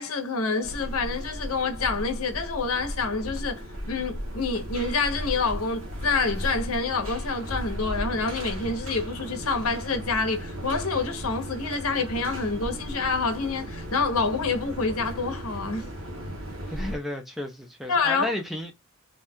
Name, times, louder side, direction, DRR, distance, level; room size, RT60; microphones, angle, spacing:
voice 1, 0.0-15.9 17.9-18.3, left 4 dB, 85° left, 0.8 m, -27 dB
sound 1, 0.6-17.0, equal, 65° right, 0.8 m, -35 dB
voice 2, 16.7-18.7, left 1 dB, ahead, 0.4 m, -32 dB
2.7 x 2.2 x 3.4 m
head